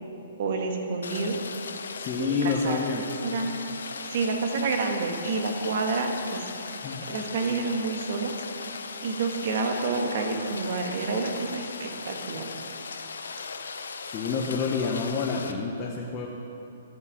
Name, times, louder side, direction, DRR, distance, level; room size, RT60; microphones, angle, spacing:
voice 1, 0.4-1.4 2.2-3.5 4.0-8.8 9.0-12.5 13.4-13.5, right 4 dB, 55° right, 3 dB, 1.4 m, -29 dB
Rain, 1.0-15.5, left 5 dB, 85° left, 0.6 m, -38 dB
voice 2, 2.0-3.0 6.8-7.0 14.1-16.3, left 5 dB, 30° left, -2 dB, 0.9 m, -28 dB
14.0 x 5.4 x 5.7 m, 2.8 s
hypercardioid pair, 145°, 0 cm